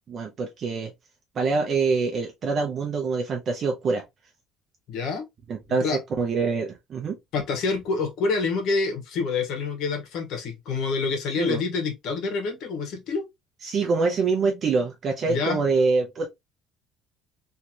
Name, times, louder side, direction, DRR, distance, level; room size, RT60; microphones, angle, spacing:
voice 1, 0.1-0.9 1.3-4.0 5.5-7.2 11.4-11.6 13.6-16.3, right 4 dB, 40° right, 0.7 m, -25 dB
voice 2, 4.9-5.2 5.8-6.0 7.3-13.2 15.2-15.6, left 4 dB, 65° left, 1.5 m, -27 dB
3.1 x 3.1 x 2.8 m
cardioid pair, 140°, 0 cm